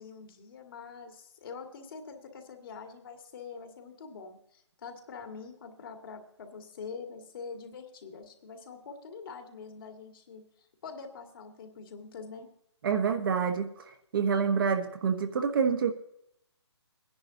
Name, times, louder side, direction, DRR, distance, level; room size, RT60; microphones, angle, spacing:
voice 1, 0.0-12.5, left 5 dB, 50° left, 4 dB, 2.0 m, -45 dB
voice 2, 12.8-13.7 14.1-15.9, right 6 dB, 50° right, 6 dB, 1.2 m, -27 dB
21.0 x 10.5 x 2.8 m, 0.72 s
hypercardioid pair, 150°, 15 cm